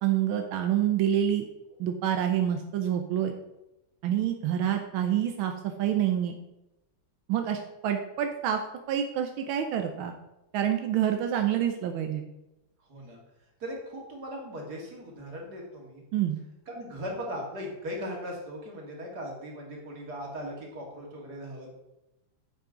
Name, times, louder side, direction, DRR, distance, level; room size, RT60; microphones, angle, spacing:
voice 1, 0.0-1.5 1.8-3.3 4.0-6.4 7.3-8.6 8.9-10.2 10.5-12.2 16.1-16.4, right 10 dB, 90° right, 5 dB, 1.6 m, -27 dB
voice 2, 12.9-13.2 13.6-16.0 16.7-21.7, equal, 55° right, -1 dB, 2.8 m, -38 dB
9.6 x 7.6 x 3.9 m, 0.92 s
omnidirectional pair, 2.1 m